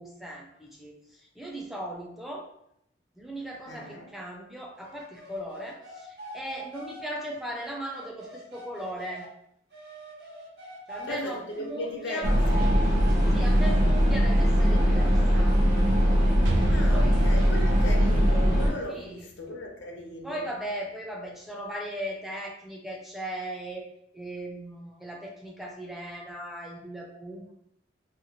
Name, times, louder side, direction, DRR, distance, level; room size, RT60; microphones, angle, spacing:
voice 1, 0.0-2.5 3.2-9.3 10.9-12.3 13.3-15.6 16.9-17.3 18.9-19.3 20.2-23.9 24.1-27.6, right 1 dB, ahead, -1 dB, 0.3 m, -38 dB
voice 2, 3.7-4.1 11.1-12.7 16.6-20.5, left 1 dB, 80° left, 1 dB, 0.6 m, -37 dB
sound 1, 4.8-9.3 9.7-12.9, equal, 60° right, 1.2 m, -46 dB
sound 2, 12.2-18.7, equal, 45° right, 0.8 m, -21 dB
Explosion, 16.5-20.2, right 1 dB, 90° right, 0.3 m, -35 dB
2.9 x 2.1 x 2.8 m, 0.73 s
head